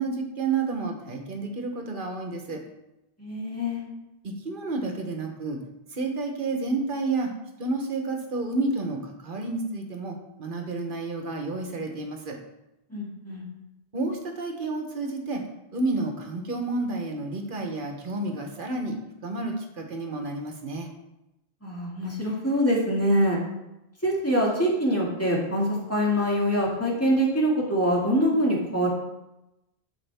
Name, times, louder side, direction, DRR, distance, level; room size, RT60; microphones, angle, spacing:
voice 1, 0.0-2.6 4.2-5.6 5.9-7.3 7.6-12.4 13.9-15.4 15.7-19.0 19.2-20.9, right 3 dB, 55° right, 3 dB, 1.2 m, -30 dB
voice 2, 3.2-3.8 12.9-13.4 21.6-23.4 24.0-28.9, equal, 15° left, -4 dB, 2.0 m, -24 dB
11.5 x 4.7 x 3.5 m, 0.92 s
omnidirectional pair, 1.1 m